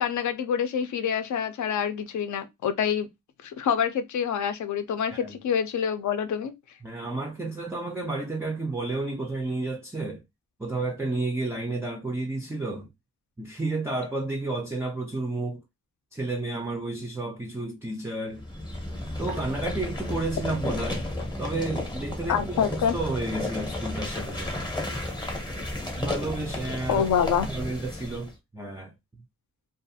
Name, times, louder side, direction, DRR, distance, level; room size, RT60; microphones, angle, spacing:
voice 1, 0.0-3.1 3.4-6.5 22.3-23.0 26.9-27.5, left 8 dB, 55° left, 0.5 m, -26 dB
voice 2, 6.8-10.2 10.6-12.9 13.4-15.6 16.1-18.4 19.2-21.0 21.4-22.6 22.9-24.7 25.9-27.1 27.4-28.9, right 2 dB, 10° right, 0.3 m, -31 dB
sound 1, 18.3-28.3, left 1 dB, 10° left, 0.7 m, -33 dB
2.4 x 2.4 x 2.6 m
wide cardioid pair, 150°, 35 cm